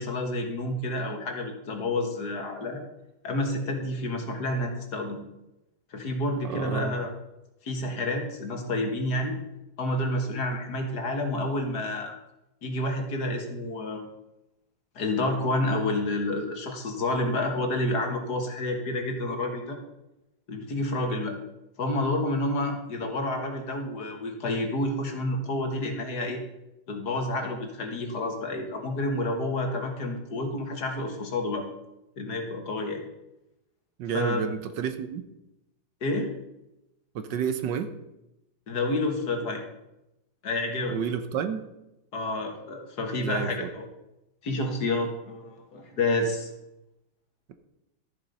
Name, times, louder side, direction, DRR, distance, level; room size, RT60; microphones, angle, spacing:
voice 1, 0.0-2.8 3.2-5.2 5.9-7.1 7.6-9.4 9.8-12.1 12.6-14.1 15.0-19.8 20.5-21.4 21.8-26.4 26.9-31.7 32.2-33.0 34.1-34.4 36.0-36.3 38.7-39.6 40.4-41.0 42.1-43.9 44.4-46.5, left 2 dB, 55° left, 4 dB, 2.0 m, -29 dB
voice 2, 6.4-6.9 34.0-35.2 37.1-37.9 40.9-41.7 43.2-43.7 47.5-47.6, right 7 dB, 70° right, 10 dB, 1.4 m, -30 dB
13.0 x 7.2 x 5.4 m, 0.92 s
omnidirectional pair, 2.1 m